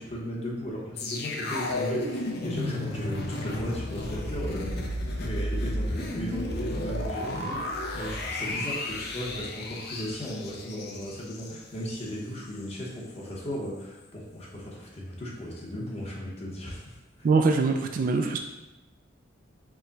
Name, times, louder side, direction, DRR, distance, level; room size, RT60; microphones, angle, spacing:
voice 1, 0.0-4.8 5.2-17.0, equal, 35° left, -4 dB, 0.9 m, -36 dB
sound 1, 1.0-12.1 12.5-12.6, left 1 dB, 55° left, 0.5 m, -33 dB
voice 2, 17.2-18.4, right 4 dB, 45° right, 4 dB, 0.3 m, -23 dB
4.7 x 2.2 x 3.9 m, 1.0 s
head